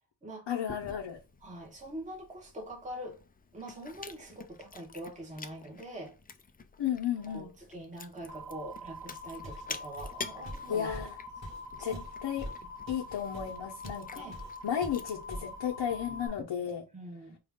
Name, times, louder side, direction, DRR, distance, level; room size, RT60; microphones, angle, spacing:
voice 1, 0.5-1.2 6.8-7.5 10.7-11.2 11.8-11.9 12.2-12.4 12.9-14.3 14.6-16.8, left 9 dB, 85° left, 0.8 m, -33 dB
Chewing mastication, 0.7-16.4, left 4 dB, 25° left, 0.3 m, -49 dB
voice 2, 1.4-3.2 3.5-6.1 7.2-10.9 11.8-12.0 14.1-14.4 16.9-17.4, right 1 dB, 15° right, 1.0 m, -44 dB
sound 1, 8.3-16.3, left 2 dB, 80° right, 1.4 m, -45 dB
Walk footsteps, 9.4-9.7 10.0-14.1 14.3-14.5 14.8-15.5, equal, 35° right, 2.4 m, -44 dB
4.8 x 2.3 x 3.6 m
wide cardioid pair, 140°, 44 cm